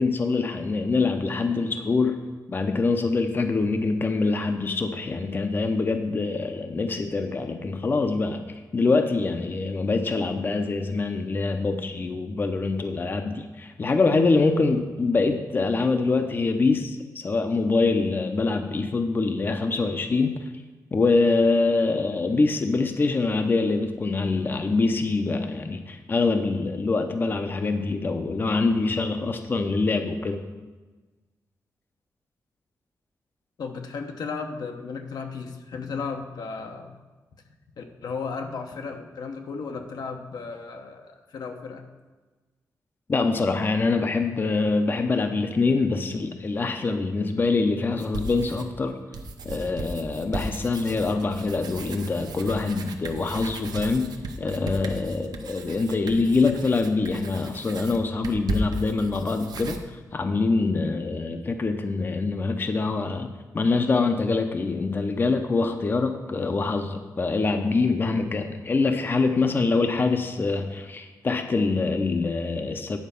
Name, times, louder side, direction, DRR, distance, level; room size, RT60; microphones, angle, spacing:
voice 1, 0.0-2.2 2.5-8.4 8.7-20.5 20.9-30.4 43.1-49.0 49.4-54.1 54.4-63.3 63.5-73.0, left 3 dB, 30° left, 6 dB, 0.6 m, -24 dB
voice 2, 33.6-37.0 37.8-41.9, left 5 dB, 80° left, 4 dB, 0.9 m, -35 dB
sound 1, 48.0-48.8 49.1-59.8, right 2 dB, 90° right, 0.8 m, -36 dB
9.4 x 4.5 x 6.8 m, 1.3 s
wide cardioid pair, 140°, 7 cm